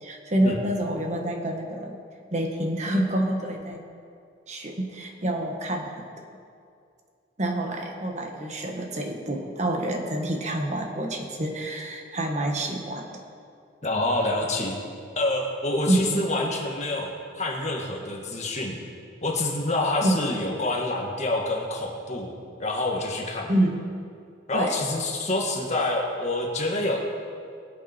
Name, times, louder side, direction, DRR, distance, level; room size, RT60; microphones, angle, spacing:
voice 1, 0.0-2.0 2.3-3.8 4.5-6.1 7.4-13.2 15.9-16.2 20.0-20.2 23.5-23.8 24.5-24.9, right 1 dB, 35° right, 2 dB, 1.4 m, -27 dB
voice 2, 13.8-14.8 15.2-18.8 19.2-23.5 24.5-27.0, left 2 dB, 35° left, 0 dB, 1.8 m, -27 dB
22.5 x 8.4 x 4.5 m, 2.4 s
head